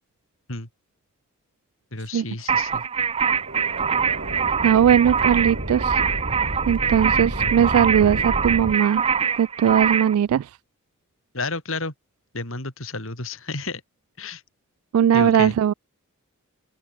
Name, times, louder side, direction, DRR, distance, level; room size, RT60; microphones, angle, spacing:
voice 1, 1.9-2.9 11.3-11.9 12.3-13.8 14.2-14.4 15.1-15.6, left 3 dB, 65° left, 5.6 m, -31 dB
sound 1, 2.5-10.2, right 6 dB, 25° right, 0.5 m, -24 dB
sound 2, 3.3-8.8, right 1 dB, 55° right, 4.5 m, -31 dB
voice 2, 4.6-6.0 6.7-9.0 9.4-10.5 14.9-15.7, right 9 dB, 90° right, 0.3 m, -19 dB
open air
head